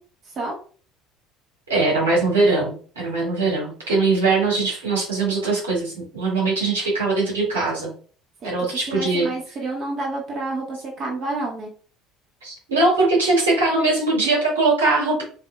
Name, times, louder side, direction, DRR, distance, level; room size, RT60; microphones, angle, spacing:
voice 1, 1.7-7.9 8.4-9.3 12.4-15.2, right 3 dB, 90° right, -4 dB, 2.3 m, -21 dB
voice 2, 8.4-11.7, right 2 dB, 45° right, 0 dB, 1.5 m, -29 dB
6.5 x 3.0 x 2.3 m, 0.41 s
hypercardioid pair, 65°, 0 cm